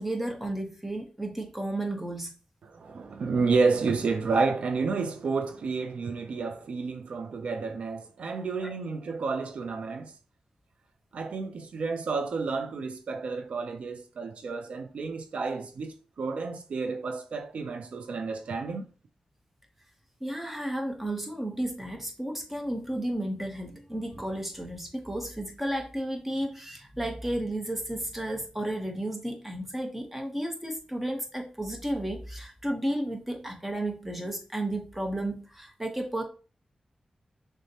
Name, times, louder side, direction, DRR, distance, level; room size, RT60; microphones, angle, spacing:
voice 1, 0.0-2.3 8.6-8.7 20.2-36.2, right 1 dB, 10° right, 0.8 m, -33 dB
voice 2, 2.6-10.1 11.1-18.9, right 4 dB, 75° right, 0.4 m, -30 dB
6.2 x 2.1 x 2.8 m
wide cardioid pair, 130°, 2 cm